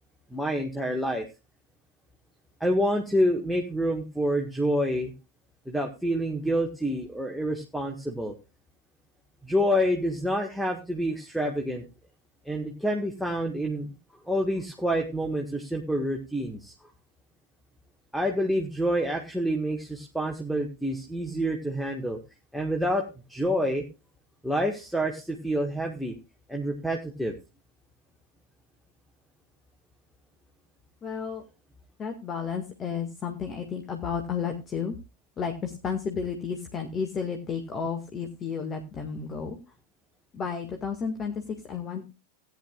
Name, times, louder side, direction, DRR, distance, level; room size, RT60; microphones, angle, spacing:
voice 1, 0.3-1.3 2.6-5.1 5.7-8.3 9.4-11.8 12.5-13.9 14.3-16.7 18.1-22.2 22.5-23.8 24.4-26.2 26.5-27.3, equal, ahead, 3 dB, 1.7 m, -27 dB
voice 2, 31.0-31.4 32.0-35.0 35.4-39.6 40.3-42.0, left 6 dB, 25° left, 4 dB, 1.9 m, -32 dB
17.5 x 10.5 x 2.4 m, 0.28 s
figure-of-eight pair, 90°, 0 cm